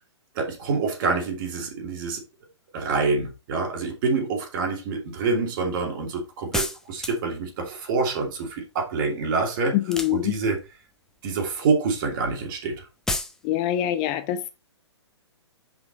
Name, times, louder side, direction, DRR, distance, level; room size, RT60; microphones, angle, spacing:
voice 1, 0.3-2.2 2.7-9.8 10.1-10.6 11.2-12.8, right 4 dB, 45° right, 2.7 m, -26 dB
sound 1, 6.5-7.4 9.8-10.7 13.1-13.4, left 2 dB, 5° left, 0.8 m, -30 dB
voice 2, 9.7-10.3 13.4-14.5, left 12 dB, 30° left, 0.6 m, -24 dB
5.9 x 5.3 x 4.4 m
hypercardioid pair, 130°, 15 cm